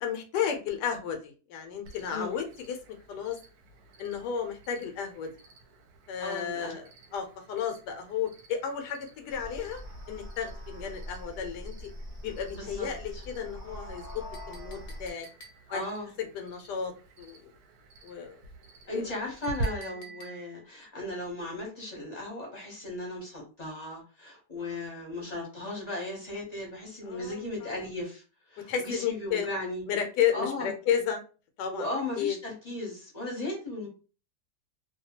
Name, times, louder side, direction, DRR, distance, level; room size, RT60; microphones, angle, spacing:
voice 1, 0.0-2.8 3.1-3.4 4.0-5.3 6.1-9.8 10.1-11.9 12.2-14.0 14.5-15.3 15.7-15.8 16.3-16.9 17.2-17.5 18.0-18.4 18.9-19.0 20.0-20.1 24.6-24.8 27.1-27.7 28.7-29.5 29.9-31.2 31.6-31.9 32.2-32.4, left 8 dB, 80° left, 1.2 m, -33 dB
Cricket, 1.8-19.6, right 1 dB, 75° right, 1.0 m, -47 dB
voice 2, 6.2-6.7 12.5-12.9 13.1-13.2 15.7-16.1 18.9-28.2 28.5-29.8 30.3-30.7 31.7-33.9, left 2 dB, 35° left, 0.8 m, -36 dB
sound 1, 9.3-15.1, equal, 20° right, 0.8 m, -43 dB
Chink clink, 14.3-15.9 19.4-20.7, right 2 dB, 60° left, 1.0 m, -50 dB
2.8 x 2.2 x 2.8 m
omnidirectional pair, 1.8 m